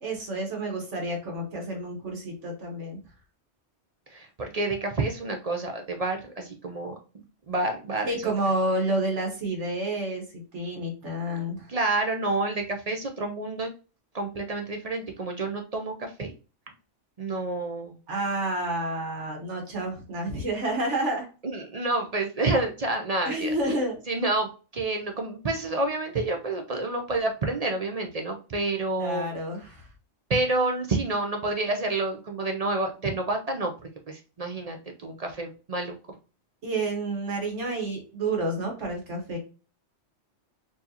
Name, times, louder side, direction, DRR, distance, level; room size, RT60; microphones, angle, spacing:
voice 1, 0.0-3.0 8.0-11.7 18.1-21.3 23.2-24.0 29.0-29.9 36.6-39.4, right 1 dB, 75° right, 1 dB, 1.7 m, -29 dB
voice 2, 4.1-7.0 7.5-8.3 11.7-13.7 14.1-16.3 17.2-18.0 21.4-23.6 24.1-29.3 30.3-33.7 34.1-36.0, right 2 dB, 45° right, 4 dB, 0.6 m, -29 dB
4.5 x 2.8 x 2.8 m, 0.34 s
omnidirectional pair, 1.2 m